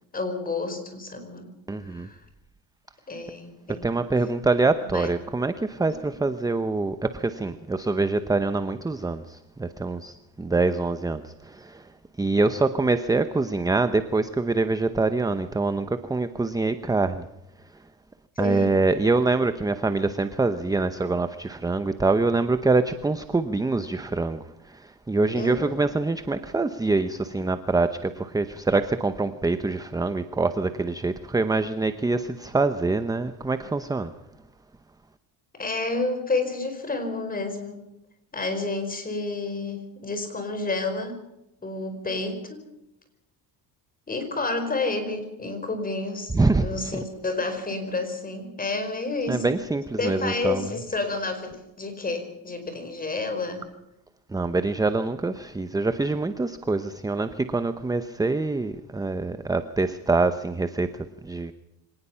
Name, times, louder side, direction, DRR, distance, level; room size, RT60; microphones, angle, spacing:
voice 1, 0.1-1.5 1.8-2.2 3.1-3.9 4.8-5.1 5.9-6.2 18.4-18.7 25.3-25.8 35.5-37.8 38.3-41.2 41.6-42.6 44.1-49.5 50.0-53.7, left 3 dB, 20° left, 7 dB, 5.0 m, -30 dB
voice 2, 1.7-2.1 3.8-11.9 12.2-17.3 18.4-34.1 46.3-46.7 49.3-50.7 54.3-61.5, right 3 dB, 10° right, 11 dB, 0.8 m, -25 dB
25.0 x 19.0 x 5.7 m, 0.90 s
cardioid pair, 135°, 42 cm